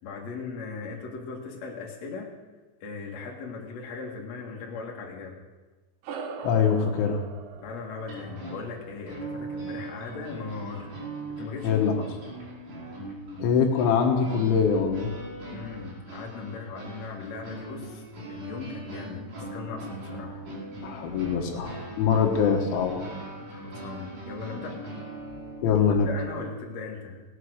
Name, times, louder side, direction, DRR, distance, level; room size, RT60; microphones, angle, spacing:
voice 1, 0.0-2.3 2.8-5.4 7.6-10.9 11.4-11.8 15.5-18.0 18.3-19.2 19.5-20.4 23.4-24.8 26.0-27.2, left 4 dB, 50° left, -1 dB, 2.2 m, -38 dB
sound 1, 6.0-10.8, right 5 dB, 80° right, 2.0 m, -43 dB
voice 2, 6.4-7.2 11.6-11.9 13.4-15.1 20.8-23.0 25.6-26.1, left 6 dB, 75° left, 2 dB, 3.5 m, -23 dB
sound 2, 8.0-25.6, right 2 dB, 40° right, 5.4 m, -40 dB
17.5 x 8.7 x 6.4 m, 1.3 s
omnidirectional pair, 5.7 m